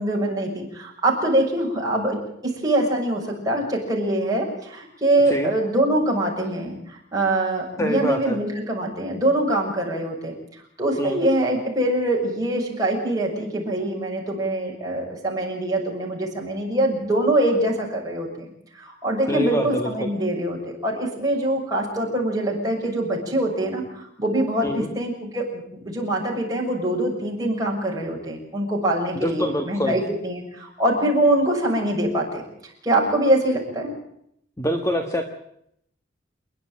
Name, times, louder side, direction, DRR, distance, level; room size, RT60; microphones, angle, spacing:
voice 1, 0.0-2.2 2.4-10.3 10.8-33.9, right 1 dB, 20° right, -2 dB, 6.7 m, -24 dB
voice 2, 7.8-8.4 11.0-11.2 19.3-20.1 24.6-24.9 29.1-30.0 34.6-35.2, equal, 15° left, 5 dB, 1.5 m, -25 dB
28.5 x 11.0 x 9.1 m, 0.72 s
head